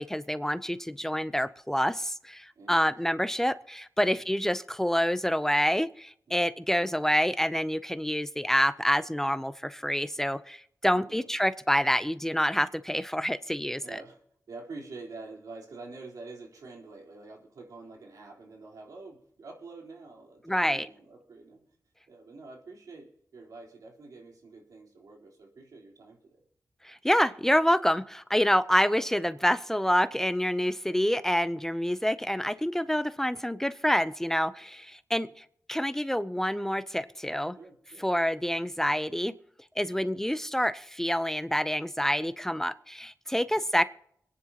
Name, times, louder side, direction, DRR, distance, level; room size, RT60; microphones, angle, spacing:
voice 1, 0.0-13.8 20.5-20.9 26.8-37.5 38.0-39.3 39.8-43.8, equal, 5° left, 13 dB, 0.5 m, -27 dB
voice 2, 10.9-11.3 13.8-14.2 14.5-21.7 22.1-26.4 35.2-35.3 37.6-38.1 39.9-40.1 43.4-43.6, right 3 dB, 85° right, -1 dB, 3.7 m, -47 dB
26.5 x 10.0 x 2.9 m, 0.68 s
wide cardioid pair, 95°, 6 cm